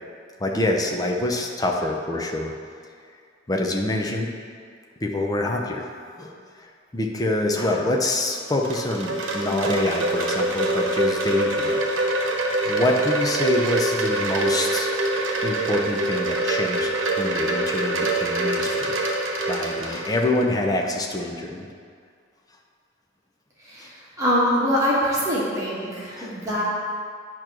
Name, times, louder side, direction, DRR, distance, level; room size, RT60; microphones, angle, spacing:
voice 1, 0.4-2.5 3.5-4.3 5.0-5.9 6.2-11.8 12.6-14.9 15.4-16.9 17.2-19.2 19.5-21.7 23.8-23.9 26.1-26.3, left 1 dB, 20° left, 1 dB, 0.6 m, -26 dB
Wind chime, 8.2-20.4, right 2 dB, 90° right, 1.0 m, -25 dB
voice 2, 23.6-26.6, equal, 15° right, -7 dB, 1.4 m, -24 dB
8.8 x 3.0 x 6.0 m, 2.1 s
head